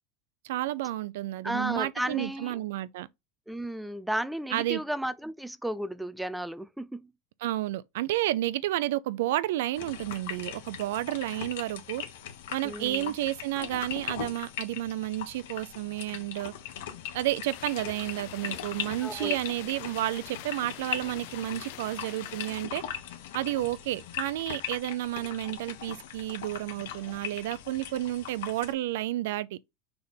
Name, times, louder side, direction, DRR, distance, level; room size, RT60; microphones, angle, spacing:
voice 1, 0.4-3.1 4.5-4.8 7.4-12.0 12.5-16.5 17.1-22.8 23.3-29.6, right 15 dB, 80° right, 0.5 m, -31 dB
voice 2, 1.4-2.6 3.5-7.1 12.6-13.1 19.0-19.4, right 1 dB, ahead, 0.4 m, -34 dB
sound 1, 9.7-28.7, left 10 dB, 80° left, 1.4 m, -40 dB
sound 2, 17.4-22.7, left 14 dB, 55° left, 0.5 m, -46 dB
6.7 x 3.5 x 4.1 m
supercardioid pair, 170°, 0 cm